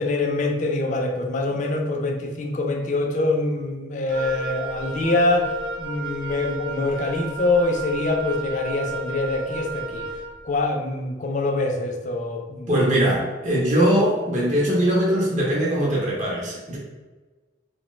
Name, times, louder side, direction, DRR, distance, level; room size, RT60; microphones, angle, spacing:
voice 1, 0.0-10.1 10.4-12.7, left 2 dB, 40° left, 3 dB, 0.3 m, -24 dB
Wind instrument woodwind instrument, 4.1-10.3, right 3 dB, 80° right, 0.7 m, -33 dB
voice 2, 12.7-16.8, right 1 dB, 40° right, -5 dB, 0.5 m, -21 dB
2.8 x 2.0 x 3.0 m, 1.3 s
head